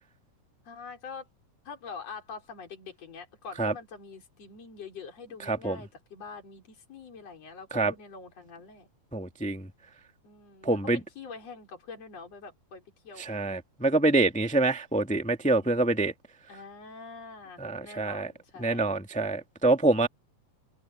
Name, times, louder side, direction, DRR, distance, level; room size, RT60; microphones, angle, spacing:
voice 1, 0.7-1.3 1.7-8.9 10.2-13.2 16.5-18.9, left 5 dB, 45° left, 5.9 m, -45 dB
voice 2, 5.5-5.8 7.7-7.9 9.1-9.7 10.6-11.0 13.2-16.1 17.6-18.3 18.6-20.1, right 2 dB, 5° left, 0.9 m, -26 dB
omnidirectional pair, 3.9 m